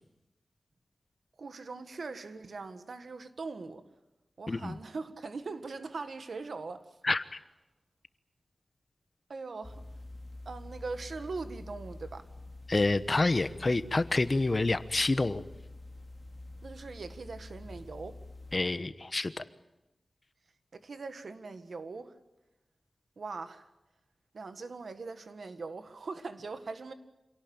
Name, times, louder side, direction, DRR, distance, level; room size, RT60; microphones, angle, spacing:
voice 1, 1.4-3.9 4.4-7.0 9.3-9.9 10.5-12.3 16.6-18.2 20.7-22.1 23.2-23.7 24.3-26.9, right 4 dB, 75° right, 1.7 m, -41 dB
sound 1, 9.6-18.6, left 2 dB, 15° left, 2.7 m, -47 dB
voice 2, 12.7-15.4 18.5-19.4, left 2 dB, 40° left, 1.1 m, -28 dB
27.0 x 17.5 x 8.9 m
wide cardioid pair, 85°, 0 cm